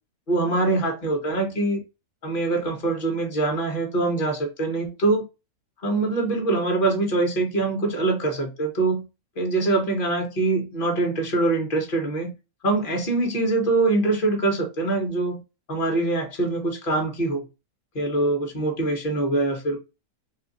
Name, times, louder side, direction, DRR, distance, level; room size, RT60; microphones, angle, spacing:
voice 1, 0.3-1.8 2.2-5.2 5.8-9.0 9.4-12.3 12.6-15.4 15.7-17.4 17.9-19.8, right 2 dB, 40° left, 1.2 m, -24 dB
2.9 x 2.4 x 3.9 m
omnidirectional pair, 1.5 m